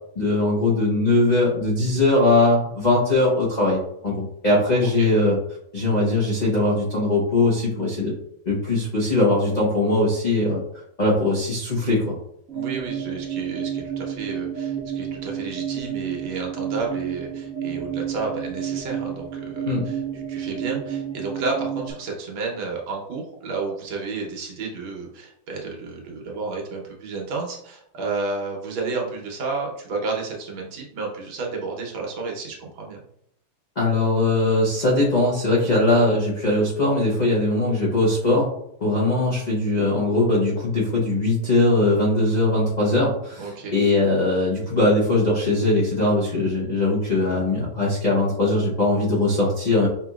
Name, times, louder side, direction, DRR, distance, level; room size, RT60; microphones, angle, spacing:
voice 1, 0.2-5.4 5.7-8.1 8.5-12.2 19.7-19.9 33.8-38.5 38.8-49.9, left 2 dB, 80° left, -5 dB, 0.4 m, -20 dB
sound 1, 12.5-21.9, right 8 dB, 50° right, 1.2 m, -30 dB
voice 2, 12.5-33.0 43.4-43.7, right 4 dB, 80° right, -1 dB, 1.8 m, -31 dB
5.7 x 2.9 x 2.4 m, 0.72 s
omnidirectional pair, 2.1 m